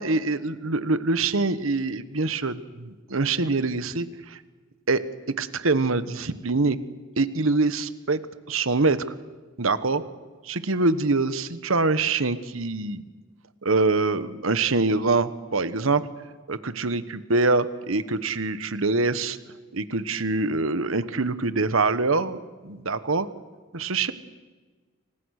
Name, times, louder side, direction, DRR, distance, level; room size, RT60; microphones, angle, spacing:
voice 1, 0.0-4.4 4.9-5.0 5.4-6.8 7.2-8.2 8.5-9.0 9.6-10.0 10.5-13.0 13.6-16.1 16.5-19.4 19.7-22.4 22.6-23.3 23.7-24.1, right 3 dB, 75° right, 13 dB, 1.2 m, -24 dB
29.0 x 25.0 x 6.6 m, 1.4 s
head